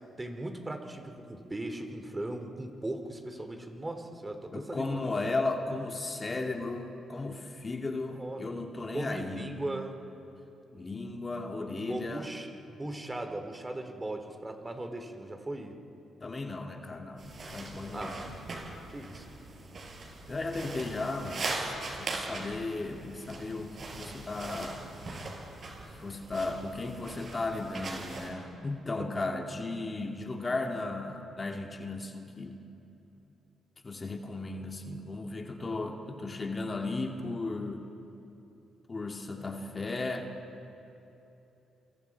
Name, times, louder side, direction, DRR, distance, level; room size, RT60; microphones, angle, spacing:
voice 1, 0.2-5.0 8.1-8.4 8.9-10.0 11.9-15.7 17.9-18.3 18.9-19.3 25.3-25.5, right 1 dB, 20° right, 5 dB, 2.7 m, -38 dB
voice 2, 4.5-9.4 10.7-12.3 16.2-18.3 20.3-21.6 22.0-24.8 25.9-32.6 33.8-37.9 38.9-40.3, left 2 dB, 35° left, 3 dB, 2.3 m, -35 dB
sound 1, 17.2-28.3, right 3 dB, 50° right, 6.1 m, -41 dB
28.0 x 23.5 x 4.7 m, 3.0 s
supercardioid pair, 60°, 0 cm